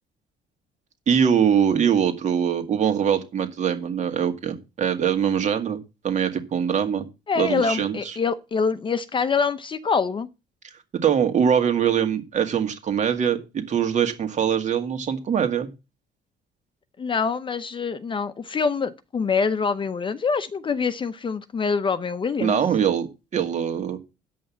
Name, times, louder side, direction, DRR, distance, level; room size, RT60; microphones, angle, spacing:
voice 1, 1.1-5.8 6.0-7.1 7.4-8.2 11.0-15.7 22.4-23.1 23.3-24.0, right 8 dB, 45° right, 2.1 m, -22 dB
voice 2, 7.3-10.3 17.0-22.6, left 5 dB, 30° left, 0.8 m, -25 dB
9.0 x 5.5 x 7.3 m
cardioid pair, 110°, 17 cm